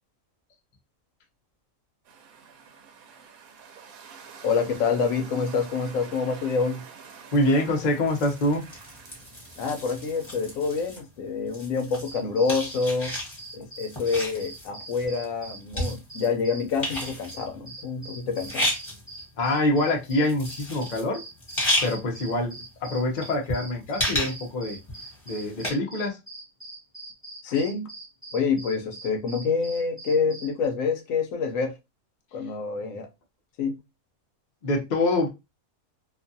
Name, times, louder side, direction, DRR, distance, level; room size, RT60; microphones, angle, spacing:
sound 1, 2.0-10.8, right 6 dB, 85° right, 1.1 m, -48 dB
voice 1, 4.4-6.8 9.6-13.1 13.5-18.7 27.4-27.9 28.3-31.8 32.3-33.1 33.6-33.8, left 5 dB, 75° left, 0.9 m, -27 dB
voice 2, 7.3-8.6 19.4-21.2 21.8-22.5 22.8-24.8 25.3-26.2 34.6-35.3, left 1 dB, 45° left, 0.6 m, -25 dB
sound 2, 7.8-11.0 11.5-16.4 16.7-17.5 18.3-19.2 19.5-19.6 20.0-21.1 21.4-21.9 22.3-22.4 23.0-25.7, left 1 dB, 20° left, 1.2 m, -32 dB
sound 3, 12.0-16.7 16.9-30.7, right 2 dB, 15° right, 0.6 m, -43 dB
2.6 x 2.3 x 2.6 m
omnidirectional pair, 1.5 m